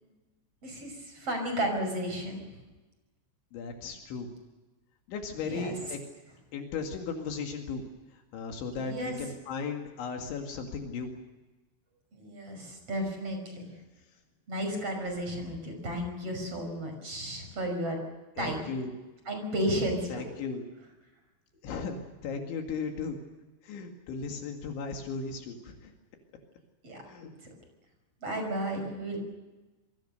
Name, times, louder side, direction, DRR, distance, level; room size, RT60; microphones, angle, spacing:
voice 1, 0.6-2.6 5.4-5.8 8.8-9.3 12.1-13.7 14.5-18.0 18.4-18.8 19.3-20.3 26.8-27.0 28.2-29.2, equal, 30° right, 4 dB, 6.5 m, -33 dB
voice 2, 3.5-4.3 5.1-6.0 6.5-7.8 8.3-11.1 18.4-18.9 20.1-20.6 21.6-22.0 22.2-23.2 23.6-25.9 27.1-27.3, left 5 dB, 75° left, 3 dB, 4.4 m, -36 dB
27.5 x 23.0 x 6.7 m, 1.2 s
omnidirectional pair, 5.4 m